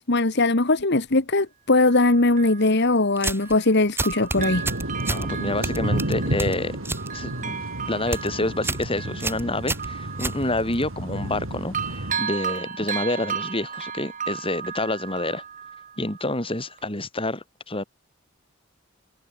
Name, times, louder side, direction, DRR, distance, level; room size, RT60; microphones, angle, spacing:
voice 1, 0.0-4.6, left 2 dB, 55° left, 1.7 m, -20 dB
Bell, 0.8-0.9 1.8-3.7 4.0-11.4 11.7-16.4 16.8-16.9, right 7 dB, 40° right, 6.8 m, -35 dB
sound 1, 3.2-3.6 4.0-5.3 5.6-7.1 7.4-7.7 8.0-8.3 8.6-8.9 9.2-10.8, right 2 dB, 10° right, 2.0 m, -29 dB
sound 2, 4.3-12.2, right 1 dB, 85° right, 3.7 m, -31 dB
voice 2, 5.1-6.7 7.1-15.4 16.0-17.8, left 2 dB, 25° left, 5.2 m, -28 dB
head